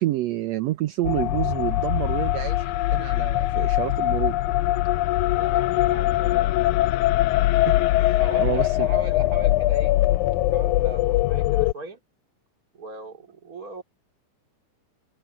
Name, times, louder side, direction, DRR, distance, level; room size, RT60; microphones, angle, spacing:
voice 1, 0.0-4.4 7.7-8.9, right 14 dB, 70° right, 1.8 m, -28 dB
sound 1, 1.0-11.7, left 15 dB, 80° left, 1.9 m, -22 dB
voice 2, 5.3-6.8 8.2-10.0 10.5-12.0 12.7-13.8, right 1 dB, 25° right, 3.8 m, -38 dB
omnidirectional pair, 3.7 m